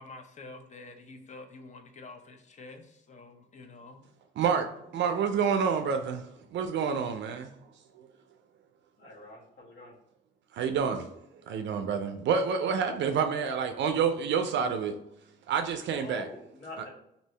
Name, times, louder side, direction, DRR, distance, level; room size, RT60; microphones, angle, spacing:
voice 1, 0.0-4.0, left 3 dB, 35° left, 0.6 m, -48 dB
voice 2, 4.4-6.3 6.5-7.5 8.0-8.1 10.5-11.1 11.5-15.0 15.5-16.3, right 6 dB, 65° right, 0.4 m, -28 dB
voice 3, 9.0-9.9 12.6-12.8 16.0-16.9, left 2 dB, 65° left, 1.4 m, -46 dB
2.7 x 2.7 x 3.2 m
cardioid pair, 90°, 20 cm